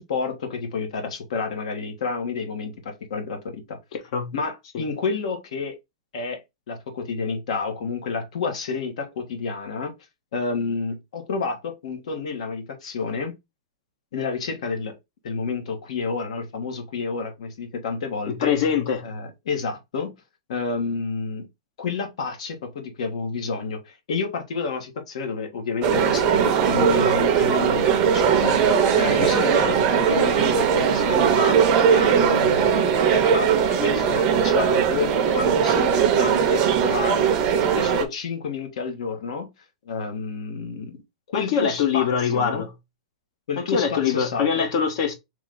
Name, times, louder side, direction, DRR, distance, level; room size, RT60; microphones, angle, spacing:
voice 1, 0.0-3.8 4.3-5.7 6.1-6.4 6.7-9.9 10.3-13.3 14.1-15.0 15.2-18.5 19.0-20.1 20.5-21.5 21.8-28.6 28.9-31.6 31.9-37.3 37.6-39.5 39.8-41.0 41.3-42.1 42.3-42.6 43.5-44.7, left 4 dB, 60° left, 1.3 m, -30 dB
voice 2, 3.9-4.3 4.7-4.8 18.3-19.1 29.6-29.8 41.3-42.7 43.6-45.1, left 7 dB, 45° left, 0.9 m, -24 dB
sound 1, 25.8-38.0, right 7 dB, 25° right, 0.6 m, -19 dB
3.1 x 3.1 x 3.8 m
hypercardioid pair, 165°, 4 cm